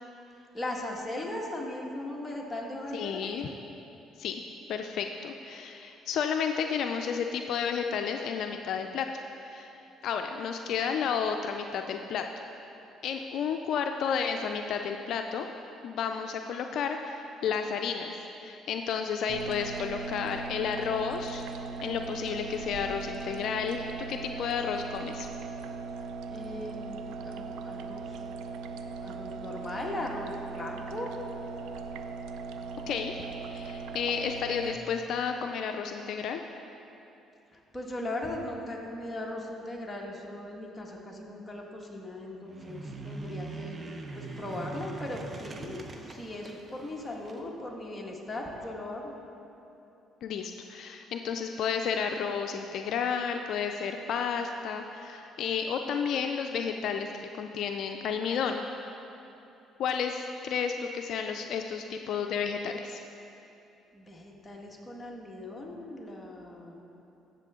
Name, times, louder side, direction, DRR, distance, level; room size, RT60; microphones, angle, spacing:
voice 1, 0.5-3.4 26.3-28.2 29.0-31.2 37.5-43.9 44.1-45.8 46.1-49.1 63.9-66.8, left 1 dB, 15° left, -2 dB, 1.8 m, -38 dB
voice 2, 2.9-3.5 4.2-4.4 4.7-9.7 10.0-12.3 13.0-15.5 15.8-21.4 21.8-25.3 32.9-33.2 33.5-36.4 50.2-57.1 57.4-58.7 59.8-63.0, left 6 dB, 65° left, 5 dB, 0.4 m, -32 dB
sound 1, 19.3-34.8, right 4 dB, 80° right, 0.5 m, -39 dB
sound 2, 42.4-47.4, right 3 dB, 35° right, 0.9 m, -42 dB
15.0 x 6.9 x 3.7 m, 2.9 s
supercardioid pair, 75°, 0 cm